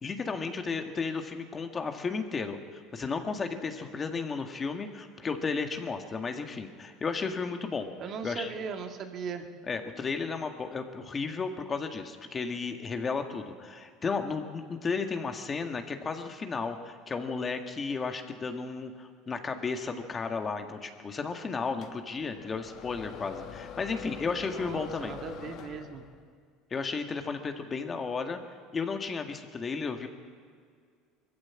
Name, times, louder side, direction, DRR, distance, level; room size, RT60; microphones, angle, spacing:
voice 1, 0.0-7.9 8.2-8.5 9.7-25.2 26.7-28.4 28.7-30.1, left 4 dB, 25° left, 6 dB, 1.8 m, -33 dB
voice 2, 8.0-9.5 24.5-26.0, right 6 dB, 50° right, 5 dB, 2.0 m, -38 dB
sound 1, 21.8-26.3, left 8 dB, 55° left, 1.4 m, -44 dB
21.0 x 15.0 x 8.6 m, 2.1 s
supercardioid pair, 110°, 0 cm